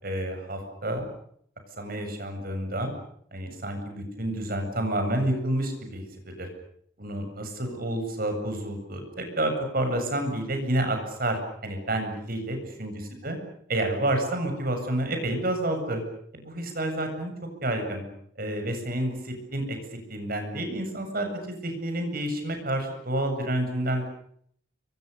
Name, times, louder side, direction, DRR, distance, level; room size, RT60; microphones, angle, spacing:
voice 1, 0.0-1.1 1.8-2.9 3.3-6.5 7.0-12.9 13.2-13.4 13.7-16.0 16.3-17.3 17.6-18.0 18.4-19.8 20.1-24.1, right 1 dB, 50° right, 5 dB, 7.8 m, -29 dB
30.0 x 25.0 x 6.9 m, 0.66 s
head